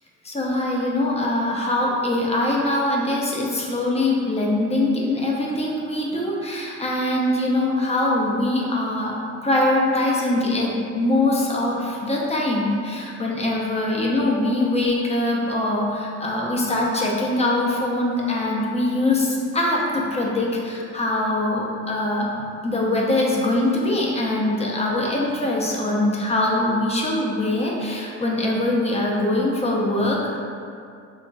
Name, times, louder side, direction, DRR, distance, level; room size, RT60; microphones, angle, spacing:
voice 1, 0.2-9.2 9.4-22.3 22.6-30.4, left 1 dB, 20° left, -3 dB, 0.6 m, -22 dB
3.9 x 2.9 x 2.3 m, 2.4 s
cardioid pair, 90°, 30 cm